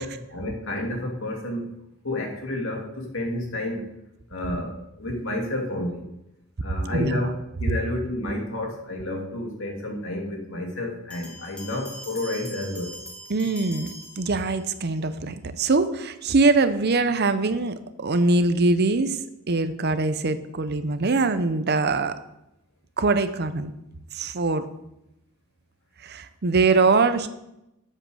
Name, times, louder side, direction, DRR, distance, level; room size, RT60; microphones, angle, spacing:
voice 1, 0.0-1.7 2.0-3.9 4.3-4.7 5.0-6.1 6.6-12.9, left 1 dB, 60° left, 0 dB, 2.5 m, -30 dB
sound 1, 11.1-14.9, equal, 5° left, 1.5 m, -42 dB
voice 2, 13.3-19.2 19.5-22.1 23.0-23.7 24.1-24.7 26.0-27.3, right 3 dB, 50° right, 11 dB, 0.7 m, -22 dB
8.2 x 7.6 x 6.3 m, 0.87 s
head